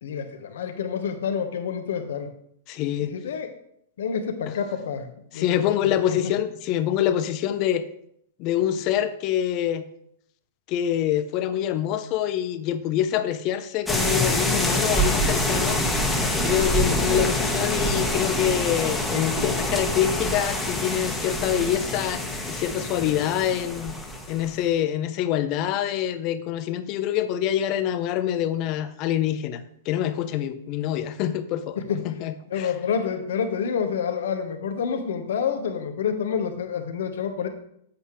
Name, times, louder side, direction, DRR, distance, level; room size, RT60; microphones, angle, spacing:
voice 1, 0.0-2.3 3.0-3.5 4.0-6.3 31.8-32.1 32.5-37.5, left 7 dB, 70° left, 7 dB, 1.2 m, -28 dB
voice 2, 2.7-3.1 5.3-7.8 8.4-9.9 10.7-15.8 16.4-24.0 24.3-32.7, left 11 dB, 45° left, 12 dB, 0.7 m, -25 dB
sound 1, 13.9-24.6, left 1 dB, 5° left, 1.3 m, -25 dB
8.1 x 8.0 x 3.2 m, 0.71 s
hypercardioid pair, 115°, 0 cm